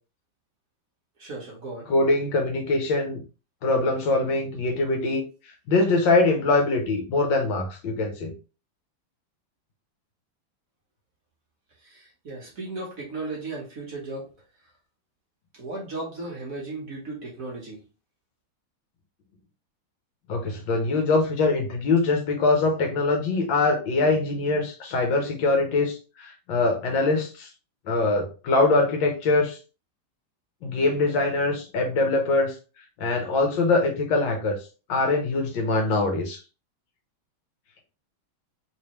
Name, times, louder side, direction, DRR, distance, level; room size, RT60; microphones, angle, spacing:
voice 1, 1.2-1.9 11.8-14.3 15.5-17.8, right 2 dB, 50° right, -3 dB, 1.1 m, -36 dB
voice 2, 1.9-3.2 3.6-8.3 20.3-27.5 27.9-29.6 30.6-32.6 33.0-34.6 34.9-36.4, left 3 dB, 70° left, 3 dB, 1.4 m, -23 dB
3.4 x 3.3 x 2.9 m, 0.34 s
omnidirectional pair, 2.3 m